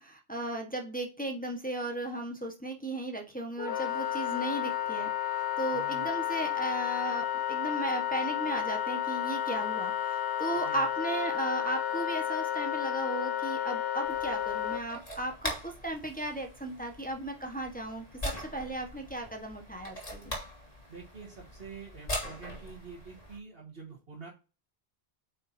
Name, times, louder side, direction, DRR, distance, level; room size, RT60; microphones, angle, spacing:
voice 1, 0.0-20.4, right 1 dB, 10° left, 1 dB, 1.4 m, -36 dB
Wind instrument woodwind instrument, 3.6-14.8, left 10 dB, 85° left, 1.1 m, -32 dB
voice 2, 5.7-6.1 10.6-10.9 20.9-24.3, right 5 dB, 65° right, -3 dB, 2.1 m, -47 dB
sound 1, 14.0-23.4, left 1 dB, 35° left, 2.6 m, -41 dB
8.8 x 5.5 x 2.8 m, 0.32 s
omnidirectional pair, 1.1 m